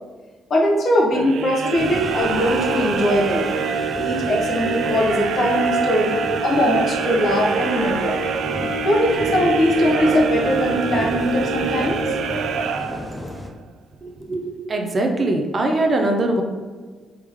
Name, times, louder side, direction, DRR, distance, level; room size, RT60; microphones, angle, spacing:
voice 1, 0.5-3.5 3.9-8.2 8.8-12.0, left 1 dB, 50° left, -2 dB, 1.1 m, -20 dB
sound 1, 1.1-13.4, right 5 dB, 85° right, 0.4 m, -25 dB
sound 2, 1.8-13.5, left 1 dB, 15° left, 0.6 m, -35 dB
voice 2, 14.0-16.4, right 2 dB, 35° right, 3 dB, 0.6 m, -22 dB
4.6 x 3.6 x 3.2 m, 1.4 s
cardioid pair, 120°, 0 cm